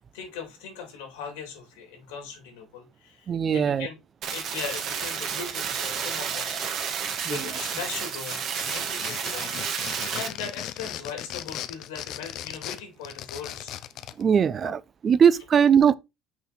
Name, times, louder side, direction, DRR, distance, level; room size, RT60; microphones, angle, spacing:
voice 1, 0.1-4.0 4.3-9.6 10.1-13.7, left 6 dB, 90° left, 3.0 m, -39 dB
voice 2, 3.3-3.9 7.2-7.5 14.2-15.9, right 7 dB, 40° right, 0.4 m, -20 dB
sound 1, 4.2-10.3, right 7 dB, 55° right, 1.4 m, -31 dB
sound 2, 7.3-8.0 8.2-14.2, left 12 dB, 60° left, 0.6 m, -38 dB
5.8 x 4.2 x 4.1 m
supercardioid pair, 95°, 0 cm